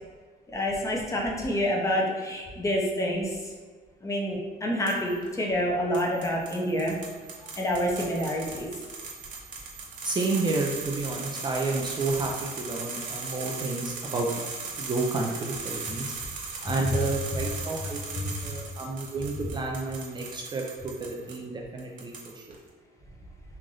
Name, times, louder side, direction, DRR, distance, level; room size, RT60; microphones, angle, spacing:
voice 1, 0.5-3.3 4.0-7.0 7.6-8.7, equal, 20° left, -2 dB, 0.7 m, -27 dB
sound 1, 4.9-5.3 5.9-21.4 21.8-22.6, right 4 dB, 50° right, 0.9 m, -38 dB
voice 2, 10.0-14.3 14.8-16.0 16.6-22.4, right 3 dB, 25° right, 0 dB, 0.4 m, -31 dB
3.2 x 2.6 x 3.7 m, 1.4 s
cardioid pair, 110°, 17 cm